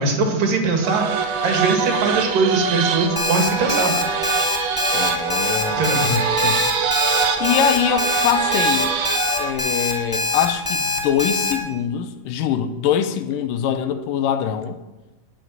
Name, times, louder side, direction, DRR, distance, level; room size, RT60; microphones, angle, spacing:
voice 1, 0.0-3.9 5.8-6.1, right 4 dB, 75° right, 3.4 m, -21 dB
sound 1, 0.8-9.6, right 6 dB, 60° right, 2.0 m, -23 dB
Alarm, 3.2-11.5, left 2 dB, 10° left, 0.9 m, -23 dB
voice 2, 4.9-6.6 7.4-8.9 9.4-14.8, left 9 dB, 85° left, 2.3 m, -23 dB
11.0 x 7.8 x 9.3 m
omnidirectional pair, 3.9 m